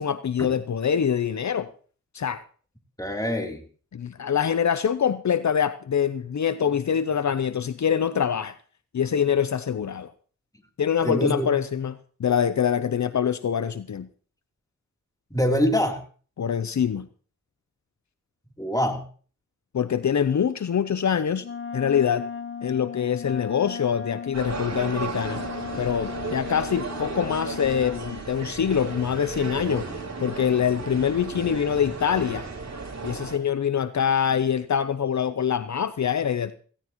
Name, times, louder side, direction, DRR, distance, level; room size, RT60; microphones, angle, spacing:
voice 1, 0.0-1.7 2.1-2.4 3.9-8.5 8.9-10.1 10.8-14.1 16.4-17.1 19.7-21.5 21.7-22.2 22.6-25.4 25.8-29.9 30.2-32.4 33.0-36.5, left 8 dB, 70° left, 13 dB, 0.6 m, -24 dB
voice 2, 3.0-3.6 11.0-11.5 15.3-16.0 18.6-19.0, equal, 10° left, 3 dB, 3.3 m, -24 dB
Wind instrument woodwind instrument, 21.4-28.2, left 6 dB, 45° left, 0.9 m, -36 dB
sound 1, 24.3-33.4, right 4 dB, 65° right, 3.6 m, -34 dB
16.5 x 16.5 x 3.0 m, 0.42 s
cardioid pair, 45°, 30 cm